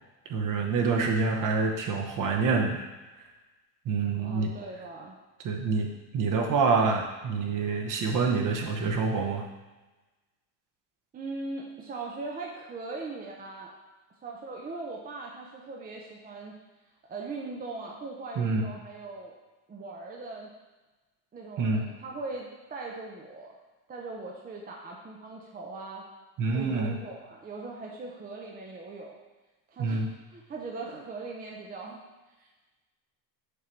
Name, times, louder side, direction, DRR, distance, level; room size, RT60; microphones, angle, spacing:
voice 1, 0.3-2.8 3.8-4.5 5.4-9.4 18.4-18.7 21.6-21.9 26.4-27.0 29.8-30.1, right 4 dB, 40° right, 2 dB, 1.0 m, -27 dB
voice 2, 4.2-5.2 11.1-13.7 14.2-16.6 17.1-19.3 19.7-20.5 21.3-23.5 23.9-26.0 26.5-29.2 29.7-32.0 32.4-32.5, right 3 dB, 20° right, -1 dB, 0.5 m, -40 dB
6.7 x 3.9 x 4.4 m, 1.2 s
cardioid pair, 140°, 48 cm